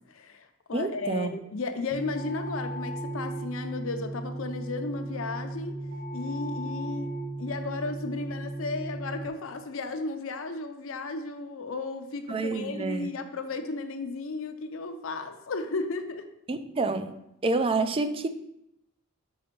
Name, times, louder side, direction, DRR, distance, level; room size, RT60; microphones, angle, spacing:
voice 1, 0.1-5.8 6.1-7.1 7.4-16.3, left 3 dB, 65° left, 7 dB, 0.6 m, -34 dB
voice 2, 0.7-1.3 12.3-13.1 16.5-17.2 17.4-18.3, right 3 dB, 25° right, 10 dB, 0.3 m, -28 dB
sound 1, 1.9-9.3, right 1 dB, 50° right, 1.1 m, -36 dB
5.5 x 4.3 x 5.2 m, 0.82 s
head